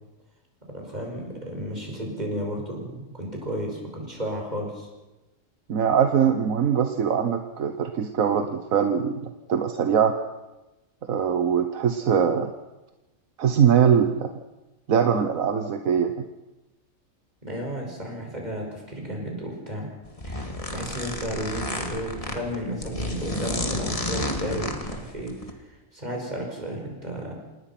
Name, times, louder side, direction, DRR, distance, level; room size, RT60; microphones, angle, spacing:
voice 1, 0.7-4.9 17.4-19.9 20.2-25.3 25.9-27.4, equal, 30° right, 0 dB, 5.9 m, -33 dB
voice 2, 5.7-10.1 11.1-12.5 13.4-14.3 14.9-16.1, right 7 dB, 90° right, 7 dB, 1.5 m, -22 dB
sound 1, 20.1-25.5, left 1 dB, 25° left, 2.3 m, -31 dB
27.5 x 19.0 x 5.9 m, 1.0 s
omnidirectional pair, 1.4 m